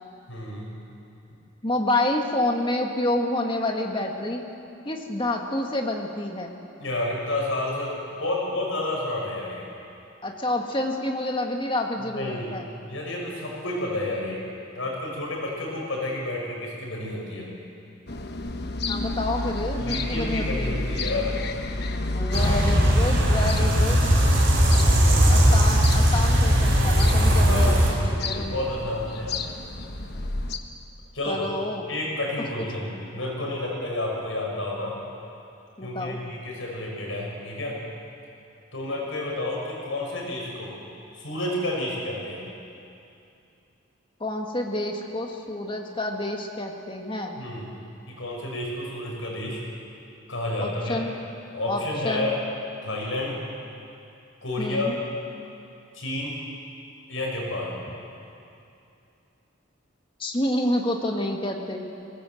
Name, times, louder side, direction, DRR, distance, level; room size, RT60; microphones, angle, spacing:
voice 1, 0.3-0.7 6.8-9.6 12.1-12.5 12.9-14.4 14.7-17.5 19.8-21.3 24.9-25.3 27.4-27.9 28.2-29.4 31.1-31.4 31.9-35.0 35.8-37.8 38.7-40.8 41.1-42.4 47.4-47.7 48.1-49.6 50.3-51.0 51.5-52.4 52.8-53.4 54.4-54.9 55.9-56.4 57.1-57.7, left 1 dB, 75° left, -2 dB, 6.1 m, -30 dB
voice 2, 1.6-4.4 4.9-6.5 10.2-12.7 18.9-20.7 22.1-24.1 25.3-28.7 31.3-31.9 32.6-32.7 35.8-36.2 44.2-47.4 50.6-51.2 51.7-52.3 54.6-55.0 60.2-61.8, left 1 dB, 25° left, 2 dB, 1.8 m, -28 dB
sound 1, 18.1-30.6, left 2 dB, 50° left, 1.1 m, -32 dB
sound 2, 22.3-27.9, equal, 60° right, 4.4 m, -19 dB
21.0 x 18.0 x 7.9 m, 2.7 s
head